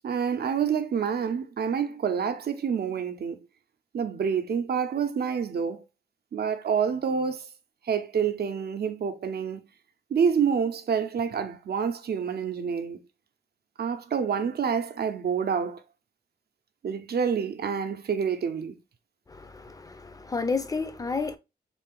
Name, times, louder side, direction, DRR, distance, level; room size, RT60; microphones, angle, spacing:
voice 1, 0.0-3.4 3.9-5.8 6.3-7.5 7.8-9.6 10.1-13.0 13.8-15.8 16.8-18.8, right 7 dB, 65° right, 0.6 m, -27 dB
voice 2, 19.3-21.4, left 4 dB, 20° left, 0.5 m, -31 dB
3.8 x 2.5 x 3.7 m
wide cardioid pair, 125°, 18 cm